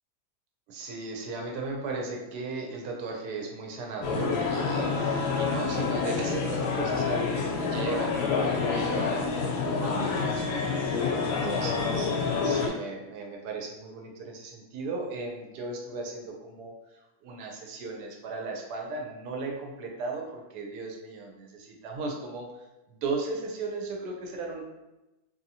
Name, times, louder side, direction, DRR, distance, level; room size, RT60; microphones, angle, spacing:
voice 1, 0.7-10.8 11.3-24.6, right 3 dB, 75° right, 0 dB, 1.1 m, -36 dB
sound 1, 4.0-12.7, left 5 dB, 75° left, 1.1 m, -28 dB
2.7 x 2.7 x 2.7 m, 0.98 s
omnidirectional pair, 1.8 m